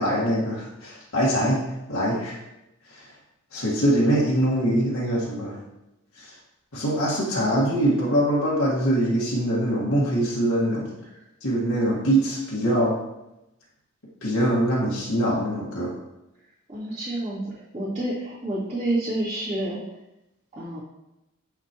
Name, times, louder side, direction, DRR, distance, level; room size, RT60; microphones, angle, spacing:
voice 1, 0.0-2.4 2.9-3.1 3.5-5.6 6.2-6.3 6.7-10.9 11.4-13.0 14.2-15.9, right 1 dB, 75° left, -5 dB, 1.7 m, -23 dB
voice 2, 16.7-19.8 20.5-20.8, right 1 dB, 30° right, -14 dB, 2.3 m, -29 dB
7.3 x 6.0 x 3.0 m, 0.92 s
head